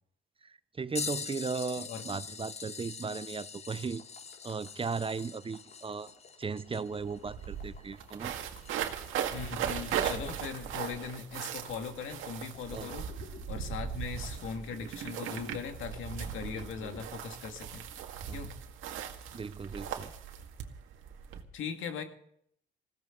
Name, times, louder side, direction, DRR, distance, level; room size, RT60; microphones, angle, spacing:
voice 1, 0.4-4.0 4.4-6.1 6.4-8.3 12.7-12.9 16.5-16.9 18.3-18.4 19.3-20.1, right 5 dB, 25° right, 0.6 m, -37 dB
sound 1, 1.0-9.2 9.9-10.0 12.3-12.4 13.4-13.6 14.6-14.7, left 6 dB, 30° left, 0.7 m, -43 dB
sound 2, 3.7-17.1, left 4 dB, 55° left, 5.3 m, -56 dB
sound 3, 6.7-6.8 7.0-21.4, right 8 dB, 80° right, 2.0 m, -38 dB
voice 2, 9.3-13.1 13.5-17.8 18.3-18.5 21.5-22.0, left 6 dB, 75° left, 2.2 m, -39 dB
20.0 x 16.0 x 3.9 m
supercardioid pair, 75°, 20 cm